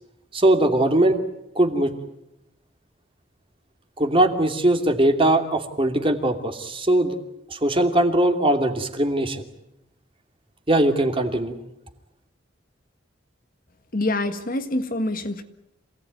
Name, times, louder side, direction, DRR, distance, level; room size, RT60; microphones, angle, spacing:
voice 1, 0.3-1.2 1.6-1.9 4.0-7.2 7.5-9.4 10.7-11.6, right 1 dB, 30° right, 5 dB, 2.6 m, -20 dB
voice 2, 13.9-15.4, left 2 dB, 50° left, 8 dB, 1.8 m, -26 dB
27.5 x 18.0 x 9.4 m, 0.85 s
head